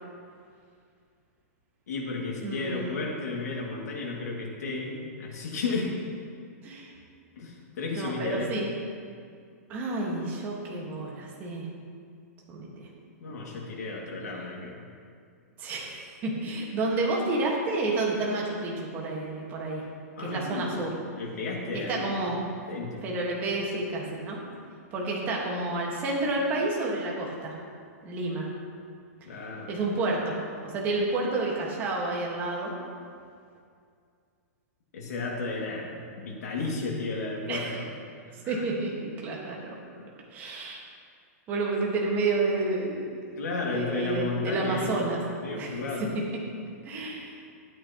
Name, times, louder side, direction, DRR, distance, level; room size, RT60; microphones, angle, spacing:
voice 1, 1.9-6.0 7.4-8.5 13.2-14.8 20.2-22.1 22.7-23.1 29.2-29.7 34.9-37.9 38.4-38.7 40.0-40.1 43.4-45.1 45.4-46.1, left 3 dB, 85° left, -2 dB, 2.2 m, -33 dB
voice 2, 2.4-3.0 6.6-6.9 7.9-8.7 9.7-11.7 12.5-12.9 15.6-19.8 20.2-20.9 21.7-22.4 23.0-24.4 24.9-27.5 28.0-28.5 29.7-32.7 37.5-37.8 38.5-39.6 40.3-40.8 41.5-43.2 43.7-45.2 45.6-45.7 46.8-47.3, right 2 dB, 20° right, -2 dB, 1.5 m, -30 dB
12.5 x 9.0 x 3.0 m, 2.3 s
hypercardioid pair, 165°, 9 cm